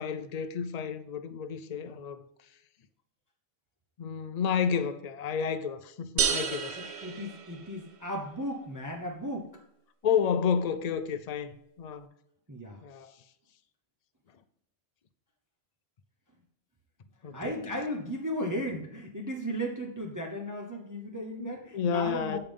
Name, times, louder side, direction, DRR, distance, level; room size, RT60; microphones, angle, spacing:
voice 1, 0.0-2.2 4.0-6.8 10.0-12.1 12.8-13.1 17.2-17.6 21.4-22.4, left 7 dB, 50° left, 0.5 m, -31 dB
sound 1, 6.2-8.0, right 7 dB, 65° right, 1.0 m, -31 dB
voice 2, 6.8-9.6 12.5-12.8 17.3-22.4, equal, 20° right, 0.8 m, -35 dB
6.8 x 5.5 x 5.3 m
omnidirectional pair, 1.3 m